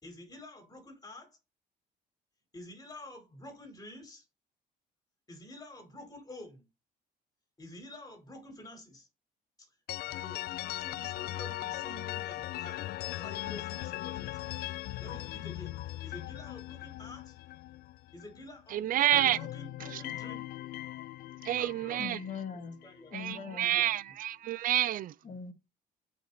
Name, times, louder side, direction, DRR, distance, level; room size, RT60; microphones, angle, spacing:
voice 1, 0.0-1.4 2.5-4.2 5.3-6.7 7.6-9.1 10.1-14.5 15.0-17.4 18.1-20.4 21.6-22.1 22.5-23.1 23.5-23.9 25.2-25.4, left 1 dB, 20° left, 4.5 m, -49 dB
sound 1, 9.9-18.6 18.9-23.0, left 16 dB, 65° left, 0.4 m, -39 dB
voice 2, 18.7-19.4 19.9-20.0 21.4-22.2 23.1-25.1, right 12 dB, 55° right, 0.5 m, -29 dB
voice 3, 22.0-22.8 23.1-23.7 25.2-25.5, left 6 dB, 45° left, 2.1 m, -40 dB
8.4 x 6.0 x 4.2 m
cardioid pair, 110°, 17 cm